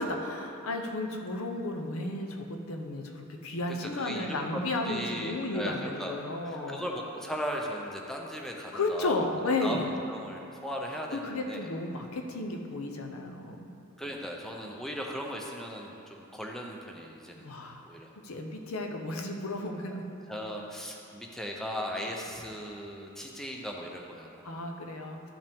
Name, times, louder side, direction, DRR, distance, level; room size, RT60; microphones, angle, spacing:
voice 1, 0.0-6.9 8.7-9.9 11.1-13.8 17.4-17.8 18.2-20.0 24.4-25.3, left 2 dB, 70° left, 3 dB, 0.8 m, -33 dB
voice 2, 3.7-9.2 9.6-11.7 14.0-17.5 17.8-18.1 20.3-24.4, equal, ahead, 0 dB, 0.6 m, -38 dB
12.5 x 5.5 x 3.5 m, 2.7 s
head